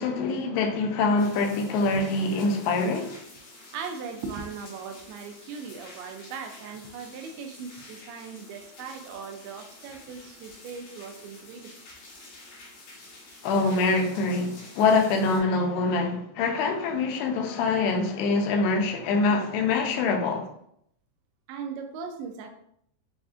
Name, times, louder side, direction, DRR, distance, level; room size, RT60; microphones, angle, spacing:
voice 1, 0.0-3.2 13.4-20.5, left 3 dB, 90° left, 2.7 m, -24 dB
sound 1, 1.2-15.4, left 2 dB, 70° left, 3.4 m, -49 dB
voice 2, 3.6-11.7 21.5-22.5, right 5 dB, 85° right, 2.5 m, -39 dB
7.0 x 2.5 x 2.4 m
omnidirectional pair, 4.5 m